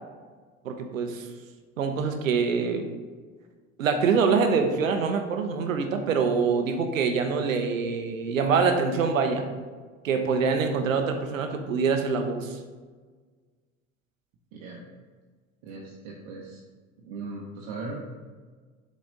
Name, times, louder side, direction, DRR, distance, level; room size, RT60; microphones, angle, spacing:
voice 1, 0.6-1.3 1.8-2.9 3.8-9.4 10.0-12.6, right 5 dB, 90° right, 6 dB, 0.7 m, -25 dB
voice 2, 14.5-14.8 15.6-16.6 17.0-18.0, right 3 dB, 65° right, -2 dB, 1.0 m, -38 dB
7.1 x 4.2 x 3.9 m, 1.5 s
hypercardioid pair, 65°, 38 cm